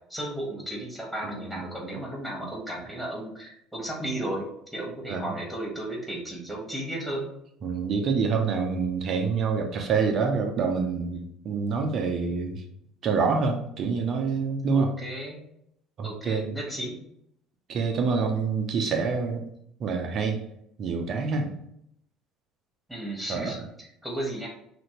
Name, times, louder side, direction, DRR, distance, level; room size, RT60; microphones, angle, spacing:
voice 1, 0.1-7.3 14.7-15.4 16.0-17.0 22.9-24.5, right 1 dB, ahead, -2 dB, 1.2 m, -34 dB
voice 2, 1.2-1.7 5.1-5.3 7.6-12.6 13.0-14.9 16.0-16.6 17.7-19.4 19.8-20.4 20.8-21.5 23.3-23.5, right 5 dB, 50° right, 3 dB, 0.5 m, -26 dB
2.9 x 2.6 x 2.9 m, 0.74 s
figure-of-eight pair, 60°, 0 cm